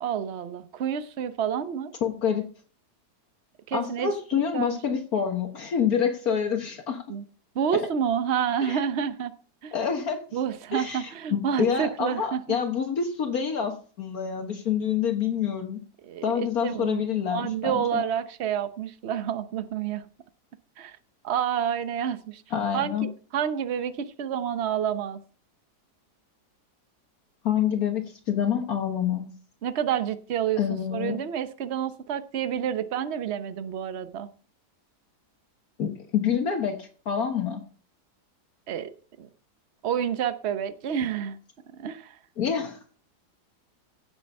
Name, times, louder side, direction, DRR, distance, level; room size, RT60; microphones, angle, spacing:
voice 1, 0.0-1.9 3.7-4.8 7.1-7.2 7.5-9.3 9.6-9.7 10.3-12.6 16.0-17.0 17.3-20.0 20.8-21.0 21.2-22.4 22.7-25.2 29.6-30.6 30.9-34.3 38.7-38.9 39.2-39.3 39.8-41.4 41.8-42.2, right 8 dB, 50° right, 12 dB, 1.0 m, -29 dB
voice 2, 2.0-2.5 3.7-7.0 7.7-7.9 8.6-8.8 9.7-10.2 10.7-15.8 16.2-18.0 22.5-23.1 27.4-29.4 30.6-31.2 35.8-37.6 42.4-42.8, left 7 dB, 60° left, 5 dB, 1.7 m, -27 dB
16.0 x 6.9 x 5.4 m, 0.42 s
omnidirectional pair, 1.8 m